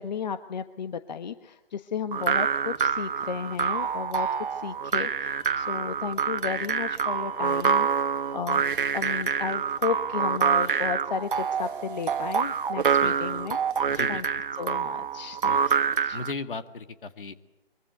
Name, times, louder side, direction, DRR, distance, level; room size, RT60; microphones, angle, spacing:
voice 1, 0.0-8.1 8.3-8.6 8.9-14.2 14.6-15.7 16.0-16.2, left 6 dB, 50° left, 10 dB, 1.2 m, -34 dB
sound 1, 2.1-16.3, right 6 dB, 60° right, 1.3 m, -26 dB
sound 2, 3.4-8.4, left 7 dB, 5° right, 3.6 m, -55 dB
voice 2, 13.9-14.2 15.4-15.6 16.1-17.3, left 4 dB, 65° left, 9 dB, 2.1 m, -36 dB
24.0 x 23.5 x 8.2 m, 0.99 s
figure-of-eight pair, 145°, 29 cm